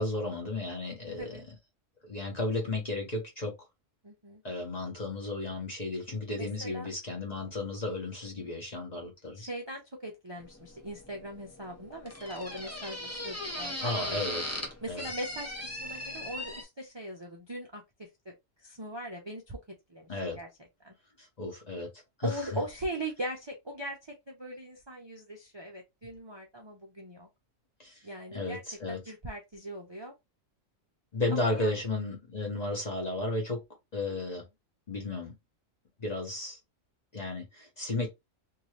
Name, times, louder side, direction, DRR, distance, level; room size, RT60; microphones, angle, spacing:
voice 1, 0.0-1.6 2.0-3.5 4.4-9.5 13.6-14.6 14.9-15.1 20.1-20.4 21.2-21.9 22.2-22.6 27.8-28.0 28.3-29.0 31.1-33.6 33.9-34.5 34.9-35.3 36.0-36.6 37.1-38.1, left 2 dB, 35° left, 0.9 m, -34 dB
voice 2, 1.2-1.5 4.0-4.4 6.4-6.9 9.3-14.0 14.8-18.3 18.6-19.6 19.9-20.5 20.8-20.9 22.2-27.3 28.0-28.6 28.9-30.1 31.4-31.7, right 1 dB, 30° right, 0.5 m, -40 dB
sound 1, 10.4-16.6, left 1 dB, 20° left, 0.5 m, -39 dB
2.8 x 2.6 x 3.1 m
omnidirectional pair, 1.4 m